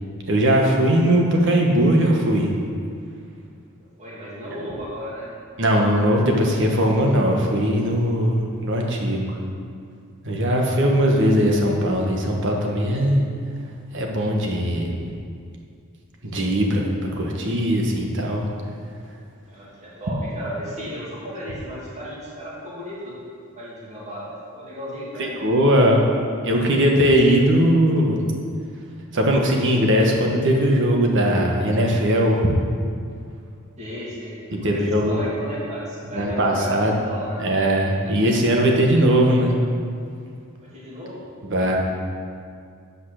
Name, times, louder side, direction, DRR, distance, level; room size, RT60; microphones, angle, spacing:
voice 1, 0.3-2.5 5.6-9.4 10.2-13.2 13.9-14.9 16.2-18.5 25.2-26.1 26.4-28.2 29.1-32.5 34.6-35.1 36.1-36.9 37.4-39.5 41.4-41.8, equal, 60° right, 0 dB, 1.3 m, -19 dB
voice 2, 3.8-5.3 19.5-23.1 23.6-25.3 33.8-36.7 37.0-37.5 40.7-41.8, equal, 35° right, -8 dB, 2.3 m, -34 dB
8.7 x 5.4 x 6.3 m, 2.3 s
head